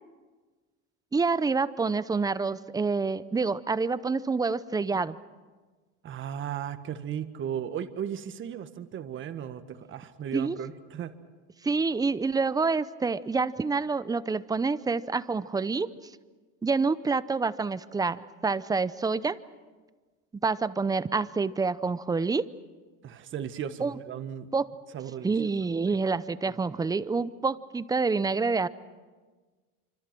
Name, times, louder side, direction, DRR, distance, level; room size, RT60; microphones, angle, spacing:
voice 1, 1.1-5.1 10.3-10.6 11.6-15.9 16.6-19.4 20.4-22.5 23.8-23.9 24.5-24.7 25.2-28.7, right 4 dB, 10° right, 15 dB, 0.6 m, -27 dB
voice 2, 6.0-11.1 23.0-24.5 24.9-25.3 26.4-26.6, right 9 dB, 35° right, 10 dB, 1.6 m, -36 dB
26.5 x 25.5 x 6.1 m, 1.4 s
supercardioid pair, 125°, 35 cm